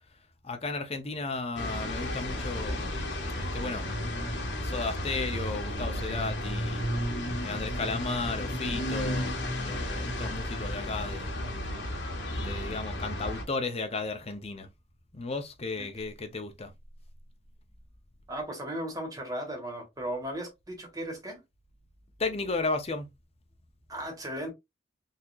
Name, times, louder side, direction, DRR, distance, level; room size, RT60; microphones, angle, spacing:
voice 1, 0.4-3.0 3.3-4.1 4.6-6.9 7.4-11.3 12.3-14.7 15.1-16.7 22.2-23.1, left 3 dB, 30° left, 0.7 m, -34 dB
sound 1, 1.5-13.4, left 1 dB, 70° left, 1.4 m, -33 dB
voice 2, 18.3-21.4 23.9-24.5, right 1 dB, 20° right, 1.4 m, -36 dB
4.0 x 2.8 x 2.4 m
head